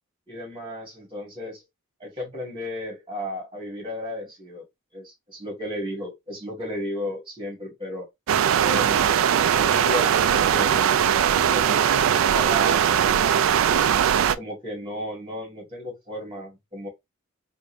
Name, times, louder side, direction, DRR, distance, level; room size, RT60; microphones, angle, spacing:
voice 1, 0.3-1.6 2.0-4.6 4.9-8.1 8.6-9.2 9.5-13.9 14.4-16.9, equal, 25° right, 1.9 m, -34 dB
sound 1, 8.3-14.4, right 9 dB, 80° right, 0.3 m, -20 dB
3.5 x 2.5 x 3.1 m
head